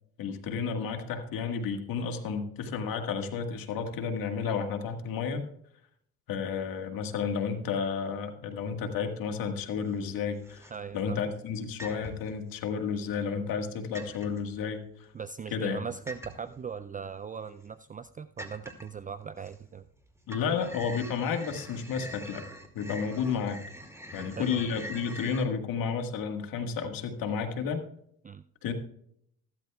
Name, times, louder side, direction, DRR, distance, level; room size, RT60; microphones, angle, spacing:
voice 1, 0.2-5.4 6.3-15.1 15.5-15.8 20.3-22.5 22.7-23.6 24.1-27.8 28.6-28.7, left 6 dB, 80° left, 5 dB, 1.7 m, -32 dB
sound 1, 9.6-10.1 10.4-11.0 11.8-12.4 12.9-13.7 13.9-14.4 16.1-16.6 17.2-17.3 17.7-17.8 18.4-19.0 19.4-20.0 20.2-25.4, equal, 10° right, 2.3 m, -44 dB
voice 2, 10.7-11.3 15.1-19.8 24.2-24.7 28.2-28.4, right 6 dB, 25° right, 13 dB, 0.4 m, -40 dB
15.0 x 12.5 x 2.3 m, 0.70 s
supercardioid pair, 70°, 34 cm